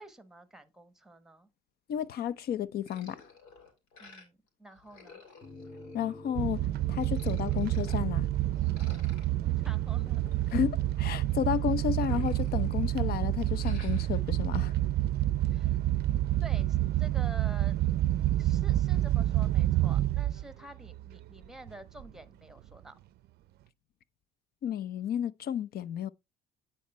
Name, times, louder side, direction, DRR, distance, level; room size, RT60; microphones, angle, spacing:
voice 1, 0.0-1.5 4.0-5.2 9.2-10.2 15.4-15.8 16.4-17.8 18.4-22.9, right 2 dB, 5° right, 1.2 m, -49 dB
voice 2, 1.9-3.2 5.9-6.6 6.9-8.3 10.5-14.7 24.6-26.1, left 9 dB, 55° left, 0.7 m, -32 dB
sound 1, 2.9-4.5 4.7-6.4 6.8-8.0 8.5-11.5 11.9-13.1 13.4-14.2, left 4 dB, 90° left, 3.1 m, -54 dB
sound 2, 5.4-20.0, left 2 dB, 25° left, 1.9 m, -54 dB
sound 3, 6.3-20.5 20.9-21.2 21.7-21.8 22.0-22.1, right 14 dB, 55° right, 0.5 m, -28 dB
9.2 x 4.3 x 4.3 m
supercardioid pair, 95°, 20 cm